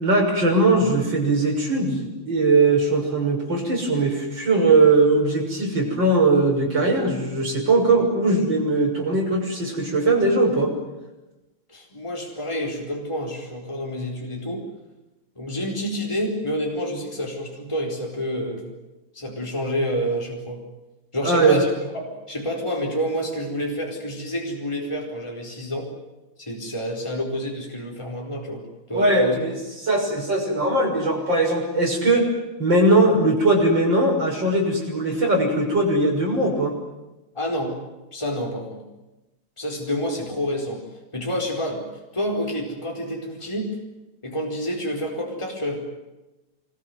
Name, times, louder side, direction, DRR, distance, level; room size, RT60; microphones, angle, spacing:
voice 1, 0.0-10.7 21.2-21.6 28.9-29.5 29.8-32.3 32.6-36.8, right 2 dB, 60° right, 1 dB, 7.1 m, -20 dB
voice 2, 11.7-14.7 15.4-18.7 19.1-20.6 21.1-25.9 26.4-29.3 37.3-37.8 38.1-38.8 39.6-40.8 41.1-41.8 42.1-43.8 44.2-45.8, equal, 15° left, 0 dB, 4.7 m, -28 dB
26.0 x 21.5 x 9.4 m, 1.0 s
omnidirectional pair, 2.3 m